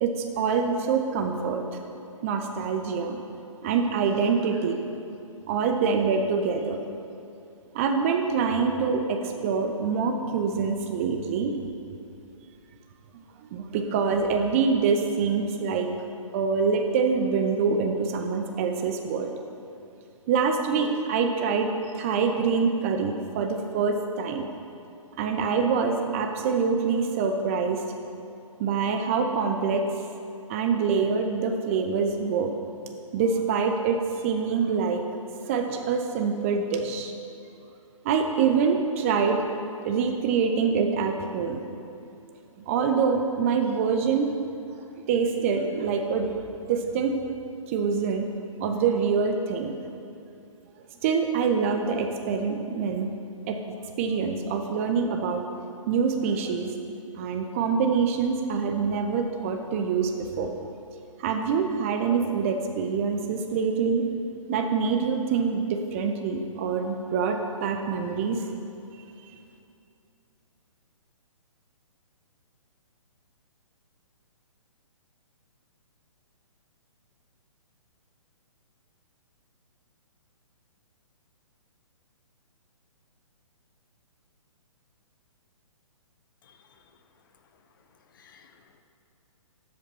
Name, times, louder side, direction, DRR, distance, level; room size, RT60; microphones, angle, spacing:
voice 1, 0.0-1.6 2.2-3.2 3.6-4.8 5.5-6.8 7.7-11.5 13.5-15.9 16.3-19.3 20.3-21.7 21.9-24.4 25.2-27.8 28.6-29.8 30.5-32.5 33.1-35.0 35.4-37.1 38.0-39.4 39.8-41.6 42.7-44.3 45.1-46.3 46.7-47.1 47.7-48.3 48.6-49.8 51.0-53.1 53.5-53.6 54.0-55.4 55.9-56.7 57.2-60.5 61.2-64.0 64.5-68.4, right 5 dB, 25° right, 4 dB, 0.5 m, -25 dB
voice 2, 86.4-86.8 88.1-88.8, left 6 dB, 40° left, 6 dB, 0.6 m, -57 dB
12.5 x 5.1 x 4.1 m, 2.7 s
figure-of-eight pair, 125°, 17 cm